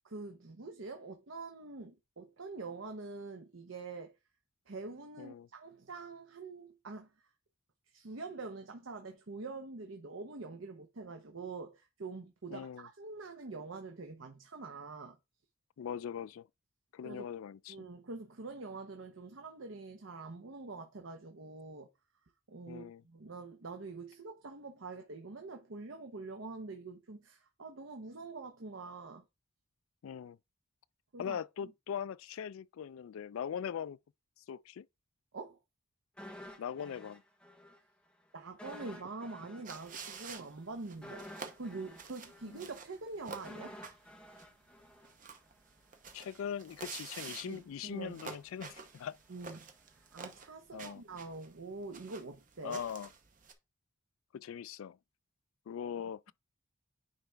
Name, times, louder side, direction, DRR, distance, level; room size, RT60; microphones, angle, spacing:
voice 1, 0.0-4.2 4.7-7.3 7.9-15.2 17.0-17.3 17.7-21.9 22.5-29.2 31.1-31.7 35.3-35.6 38.3-41.2 41.6-43.8 47.4-48.3 49.3-49.6 50.1-52.8, right 3 dB, 70° right, 0.8 m, -45 dB
voice 2, 5.2-5.5 12.5-12.9 15.8-16.5 16.9-17.9 22.7-23.0 30.0-30.4 31.2-34.0 34.5-34.9 36.6-37.2 42.4-42.7 46.1-49.2 50.7-51.0 52.6-53.1 54.3-55.0 55.7-56.3, left 8 dB, 80° left, 0.3 m, -41 dB
sound 1, 36.2-37.8 38.1-38.2 38.6-45.7 46.0-46.1, equal, 5° left, 0.8 m, -51 dB
sound 2, 39.6-53.5, right 5 dB, 40° right, 0.8 m, -49 dB
9.6 x 4.1 x 3.4 m
head